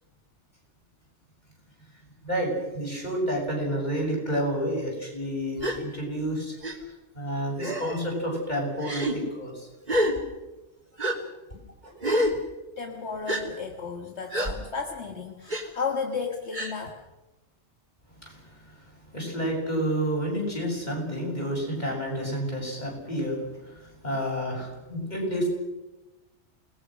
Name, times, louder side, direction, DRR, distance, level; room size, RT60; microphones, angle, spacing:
voice 1, 2.2-6.6 7.1-9.7 11.8-11.9 18.2-18.4 19.1-23.4 23.7-25.5, equal, 40° left, -1 dB, 7.6 m, -29 dB
Gasp, 5.6-5.8 6.6-6.8 7.6-8.0 8.8-9.2 9.9-10.1 11.0-11.2 12.0-12.4 13.3-13.4 14.3-14.5 15.5-15.6 16.5-16.7, equal, 40° right, 3.2 m, -26 dB
voice 2, 12.8-17.0, left 5 dB, 70° left, 3 dB, 2.0 m, -33 dB
28.5 x 20.0 x 6.4 m, 1.0 s
omnidirectional pair, 1.2 m